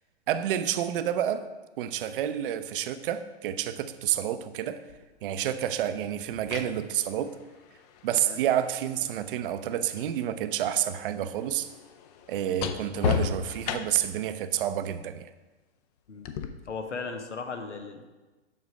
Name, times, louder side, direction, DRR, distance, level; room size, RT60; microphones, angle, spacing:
voice 1, 0.3-1.5 1.8-4.8 5.2-7.4 8.0-11.7 12.3-15.3, right 10 dB, 50° right, 0.6 m, -29 dB
sound 1, 4.9-5.0 6.1-10.2 10.4-14.2 16.2-16.5, left 7 dB, 35° left, 0.5 m, -35 dB
voice 2, 16.6-18.0, left 4 dB, 90° left, 1.0 m, -37 dB
7.6 x 5.2 x 4.7 m
hypercardioid pair, 125°, 34 cm